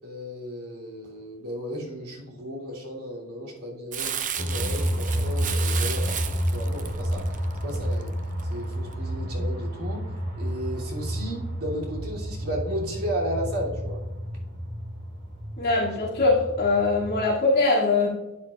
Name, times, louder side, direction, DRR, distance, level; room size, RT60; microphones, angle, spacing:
voice 1, 0.0-7.2 7.6-8.1 8.5-10.1 10.4-14.0, equal, 70° right, -4 dB, 3.0 m, -34 dB
Crumpling crinkling, 3.9-8.4 8.9-9.0, right 8 dB, 35° right, 0.6 m, -34 dB
sound 1, 4.4-17.3, equal, 50° right, 2.3 m, -30 dB
voice 2, 15.6-18.1, left 3 dB, 45° left, -5 dB, 2.6 m, -22 dB
12.0 x 8.7 x 2.5 m, 1.0 s
head